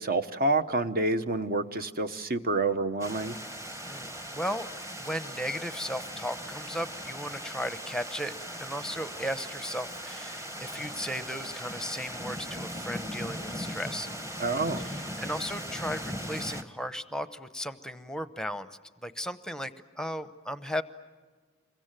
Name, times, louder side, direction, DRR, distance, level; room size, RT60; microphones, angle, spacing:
voice 1, 0.0-3.4 14.4-14.8, right 2 dB, 45° right, 10 dB, 1.0 m, -28 dB
sound 1, 3.0-16.6, equal, 15° right, 1.3 m, -39 dB
voice 2, 3.9-4.7 5.0-8.3 8.6-14.1 14.8-18.7 19.0-20.8, equal, 5° left, 12 dB, 0.8 m, -36 dB
27.5 x 23.0 x 9.0 m, 1.4 s
head